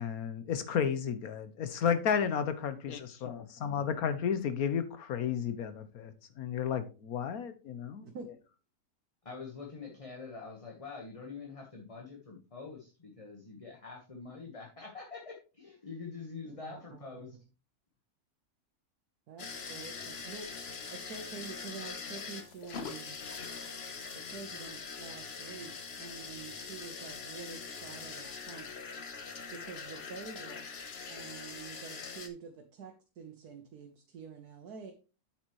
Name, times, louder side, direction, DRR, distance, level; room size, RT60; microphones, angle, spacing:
voice 1, 0.0-8.1, left 7 dB, 75° left, 11 dB, 1.3 m, -32 dB
voice 2, 9.2-17.3, left 4 dB, 25° left, 0 dB, 1.3 m, -45 dB
voice 3, 16.4-17.0 17.3-17.4 19.3-20.5 20.9-23.2 24.1-28.7 29.5-34.9, right 5 dB, 80° right, 4 dB, 1.6 m, -47 dB
sound 1, 19.4-32.3, left 5 dB, 45° left, 1.1 m, -43 dB
8.3 x 7.7 x 3.1 m, 0.32 s
omnidirectional pair, 1.6 m